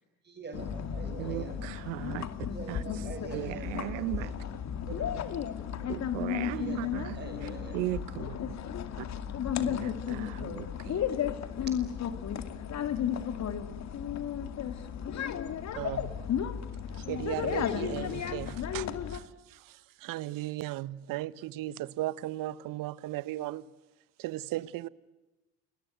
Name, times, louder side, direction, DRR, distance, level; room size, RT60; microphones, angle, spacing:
voice 1, 0.2-1.7 2.5-4.5 4.9-5.5 5.8-6.0 6.5-7.9 11.7-11.8, right 3 dB, 30° right, 5.9 m, -44 dB
sound 1, 0.5-19.2, left 8 dB, 45° left, 2.5 m, -34 dB
voice 2, 1.2-2.3 2.7-2.8 3.3-4.3 5.9-7.2 7.7-8.4 9.0-9.1 9.6-11.0, right 18 dB, 90° right, 1.1 m, -37 dB
voice 3, 15.7-16.1 16.9-23.7 24.2-24.9, right 16 dB, 60° right, 1.2 m, -36 dB
29.0 x 21.5 x 9.3 m
supercardioid pair, 90°, 36 cm